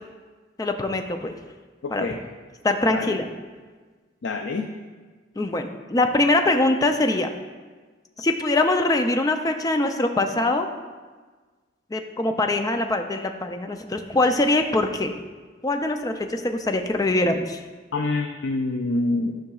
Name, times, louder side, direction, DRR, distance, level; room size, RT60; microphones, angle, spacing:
voice 1, 0.6-1.3 1.9-2.1 2.6-3.3 5.4-7.3 8.2-10.7 11.9-15.1 15.6-17.6, left 2 dB, 20° left, 6 dB, 0.4 m, -23 dB
voice 2, 1.8-2.2 2.9-3.2 4.2-4.7 17.9-19.3, left 2 dB, 80° left, 3 dB, 0.5 m, -26 dB
11.5 x 5.8 x 2.3 m, 1.4 s
head